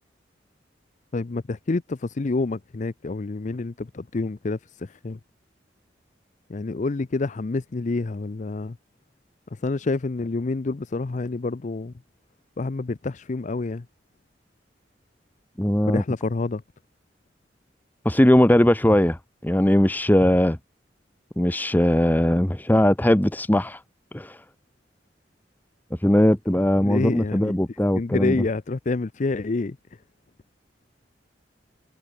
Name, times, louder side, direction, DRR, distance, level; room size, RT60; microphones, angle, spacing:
voice 1, 1.1-5.2 6.5-8.8 9.5-11.9 12.6-13.9 15.9-16.6 26.8-27.5 27.9-29.8, left 3 dB, 45° left, 0.5 m, -28 dB
voice 2, 15.6-16.0 18.0-20.6 21.4-23.8 24.1-24.4 26.0-28.4, left 1 dB, 10° left, 0.9 m, -19 dB
head